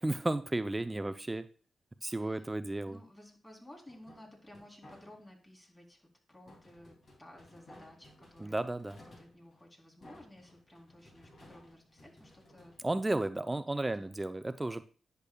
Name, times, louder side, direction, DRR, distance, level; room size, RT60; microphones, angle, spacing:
voice 1, 0.0-1.4 2.0-3.0 8.4-9.0 12.8-14.8, right 2 dB, 20° right, 12 dB, 0.5 m, -33 dB
voice 2, 2.1-2.5 2.9-8.7 9.0-12.7 13.4-14.2, left 1 dB, 25° left, 0 dB, 3.4 m, -55 dB
sound 1, 3.9-5.4 6.5-13.6, left 1 dB, 55° left, 2.8 m, -58 dB
10.0 x 6.8 x 2.3 m, 0.39 s
supercardioid pair, 45°, 0 cm